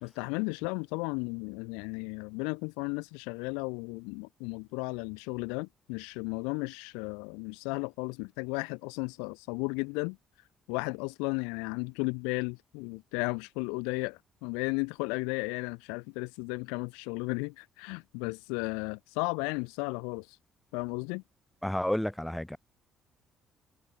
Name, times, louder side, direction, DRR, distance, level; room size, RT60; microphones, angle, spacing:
voice 1, 0.0-10.2 10.7-20.4 20.7-21.2, left 34 dB, 75° left, 0.3 m, -34 dB
voice 2, 21.6-22.6, left 1 dB, 5° left, 1.7 m, -30 dB
hypercardioid pair, 45°, 0 cm